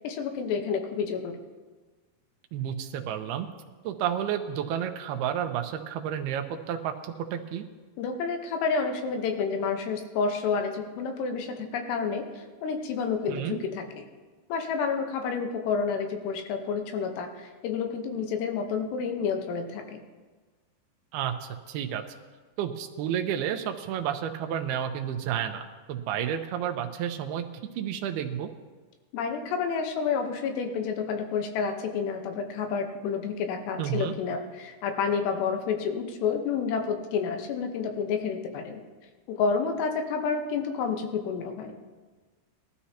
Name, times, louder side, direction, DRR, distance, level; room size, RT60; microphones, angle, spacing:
voice 1, 0.0-1.4 8.0-12.3 12.6-14.1 14.5-20.0 29.1-38.8 39.3-41.7, left 5 dB, 85° left, 5 dB, 3.2 m, -29 dB
voice 2, 2.5-3.5 3.8-7.7 13.3-13.6 21.1-22.0 22.6-27.5 27.8-28.5 33.8-34.1, right 9 dB, 80° right, 6 dB, 2.6 m, -31 dB
20.5 x 13.0 x 2.9 m, 1.4 s
omnidirectional pair, 4.8 m